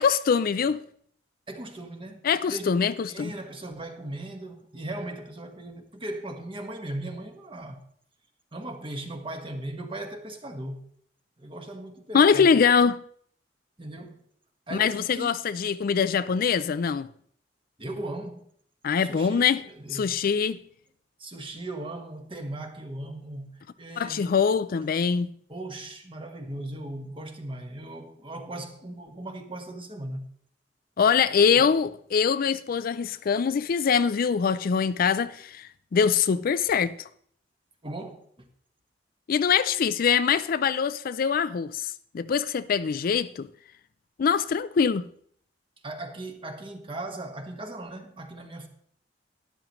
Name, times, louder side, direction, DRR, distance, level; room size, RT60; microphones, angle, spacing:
voice 1, 0.0-0.8 2.2-3.3 12.1-13.0 14.7-17.1 18.8-19.6 19.9-20.6 24.0-25.3 31.0-36.9 39.3-43.5 44.2-45.0, left 6 dB, 55° left, 0.4 m, -23 dB
voice 2, 1.5-7.8 8.5-10.9 11.4-12.5 13.8-14.3 14.7-15.4 17.8-18.5 19.0-20.2 21.2-24.4 25.5-30.2 31.6-31.7 37.8-38.5 45.8-48.7, right 1 dB, 30° right, 1.4 m, -38 dB
12.5 x 11.0 x 3.1 m
head